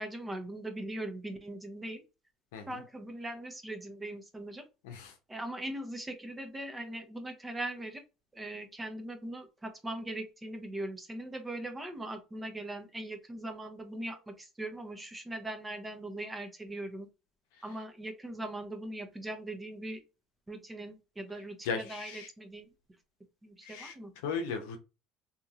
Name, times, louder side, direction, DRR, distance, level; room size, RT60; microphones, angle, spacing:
voice 1, 0.0-2.0 2.7-4.7 5.3-8.0 8.3-17.1 17.6-20.0 20.5-22.7 23.4-24.1, right 1 dB, 15° right, 0.7 m, -40 dB
voice 2, 21.6-22.3 23.6-23.9 24.2-24.8, left 5 dB, 85° left, 0.7 m, -36 dB
2.8 x 2.7 x 2.4 m
supercardioid pair, 90°, 0 cm